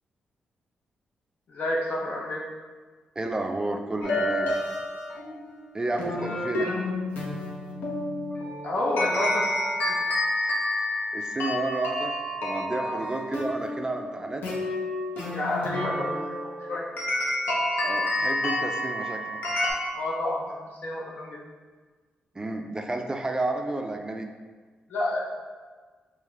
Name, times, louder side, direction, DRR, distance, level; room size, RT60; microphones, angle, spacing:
voice 1, 1.5-2.4 6.2-6.3 6.6-6.7 8.6-9.5 9.9-10.0 12.8-13.1 15.3-16.9 19.9-21.4 24.9-25.2, left 1 dB, 65° left, -3 dB, 0.6 m, -30 dB
voice 2, 3.2-4.5 5.7-6.7 11.1-12.2 12.4-14.4 17.8-19.4 22.4-24.3, right 2 dB, 25° right, 4 dB, 0.4 m, -31 dB
sound 1, 4.0-19.7, left 1 dB, 80° left, 0.9 m, -29 dB
4.6 x 2.5 x 3.4 m, 1.4 s
cardioid pair, 65°, 3 cm